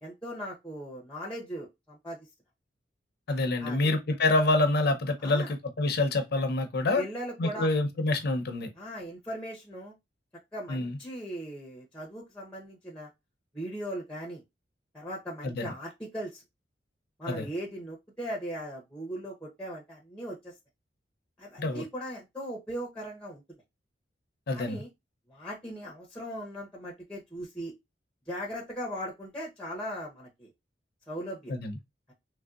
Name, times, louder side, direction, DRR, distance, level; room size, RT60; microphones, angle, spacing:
voice 1, 0.0-2.2 3.6-3.9 5.2-5.5 6.9-7.7 8.7-9.9 10.5-13.1 13.5-14.4 14.9-16.4 17.2-20.5 21.4-23.4 24.5-24.9 25.3-27.7 28.3-30.5 31.1-31.5, equal, 5° left, 0.7 m, -38 dB
voice 2, 3.3-7.0 7.4-8.7 10.7-11.0 15.4-15.6 17.3-17.5 21.6-21.8 24.5-24.8 31.5-31.7, left 2 dB, 60° left, 0.6 m, -27 dB
3.2 x 2.6 x 2.3 m
head